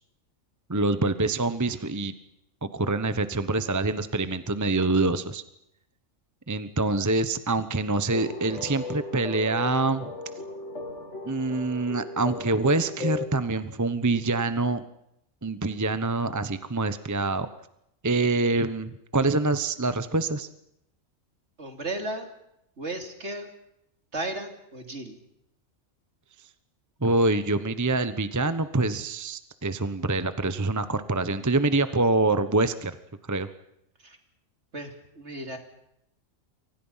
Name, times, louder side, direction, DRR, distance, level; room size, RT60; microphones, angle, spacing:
voice 1, 0.7-2.1 2.6-5.4 6.5-10.1 11.2-14.8 15.4-17.5 18.0-20.5 27.0-32.9 33.3-33.5, right 2 dB, 15° right, 11 dB, 0.9 m, -25 dB
sound 1, 8.1-13.3, left 3 dB, 65° left, 3.0 m, -36 dB
voice 2, 21.6-22.3 22.8-23.5 24.1-25.2 34.0-34.2 34.7-35.6, right 2 dB, 60° right, 5 dB, 3.5 m, -35 dB
28.5 x 25.0 x 5.7 m, 0.81 s
omnidirectional pair, 1.3 m